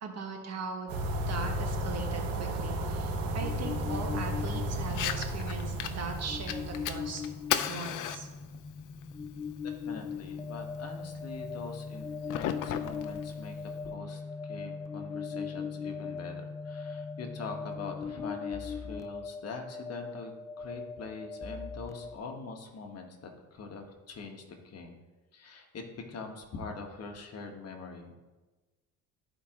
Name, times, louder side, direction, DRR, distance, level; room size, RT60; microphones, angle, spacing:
voice 1, 0.0-1.0 1.3-7.2 7.7-8.3, right 4 dB, 45° right, 2 dB, 1.5 m, -39 dB
sound 1, 0.9-7.3, right 1 dB, 75° right, 1.5 m, -34 dB
sound 2, 3.0-22.1, left 5 dB, 10° left, 0.3 m, -40 dB
Fire, 4.8-13.8, left 10 dB, 60° left, 0.7 m, -38 dB
voice 2, 9.6-25.0 25.3-25.8 26.1-28.2, left 4 dB, 45° left, 3 dB, 1.3 m, -44 dB
13.5 x 4.8 x 2.9 m, 1.2 s
cardioid pair, 100°, 35 cm